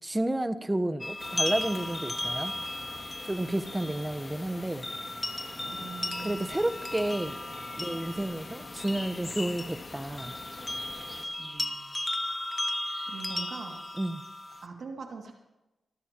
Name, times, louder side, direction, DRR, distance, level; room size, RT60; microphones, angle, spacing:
voice 1, 0.0-2.5 3.2-4.9 6.2-7.4 7.8-10.4 14.0-14.2, right 1 dB, 15° right, 12 dB, 1.1 m, -31 dB
sound 1, 1.0-14.7, left 1 dB, 20° left, 1.2 m, -36 dB
sound 2, 1.2-11.2, left 3 dB, 50° left, 2.5 m, -44 dB
voice 2, 5.6-6.5 11.4-11.9 13.1-13.8 14.6-15.3, right 4 dB, 75° right, 1 dB, 2.4 m, -42 dB
25.5 x 13.0 x 3.0 m, 0.99 s
cardioid pair, 50°, 0 cm